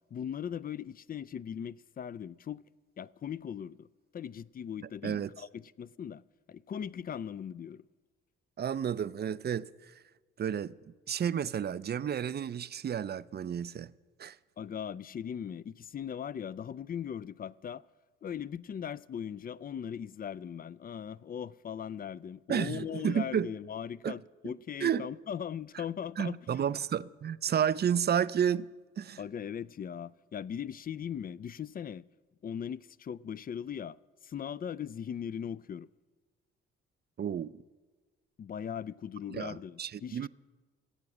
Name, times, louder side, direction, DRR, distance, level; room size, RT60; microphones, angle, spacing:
voice 1, 0.1-2.6 3.0-3.9 4.1-6.2 6.5-7.8 14.6-17.8 18.2-26.4 29.2-32.0 32.4-34.0 34.2-35.9 38.4-40.3, left 8 dB, 30° left, 0.4 m, -39 dB
voice 2, 8.6-9.9 10.4-10.7 11.1-13.9 14.2-14.4 22.5-23.5 24.0-24.2 24.8-25.1 26.2-28.7 29.0-29.2 37.2-37.5 39.3-40.3, right 8 dB, 35° right, 0.4 m, -31 dB
15.5 x 8.6 x 6.1 m
hypercardioid pair, 50°, 32 cm